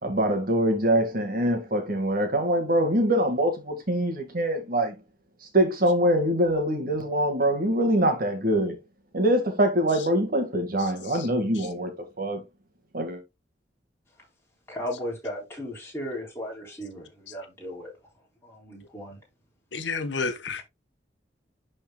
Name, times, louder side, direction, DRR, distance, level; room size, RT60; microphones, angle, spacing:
voice 1, 0.0-4.9 5.5-8.8 9.1-11.9 12.2-12.4 12.9-13.2, right 1 dB, 50° right, 1.7 m, -24 dB
voice 2, 10.8-11.3 11.5-11.7 17.3-17.4 19.7-20.6, left 4 dB, 75° left, 1.0 m, -32 dB
voice 3, 14.7-17.9 18.4-19.2, equal, 15° left, 3.7 m, -36 dB
11.0 x 4.3 x 2.2 m
head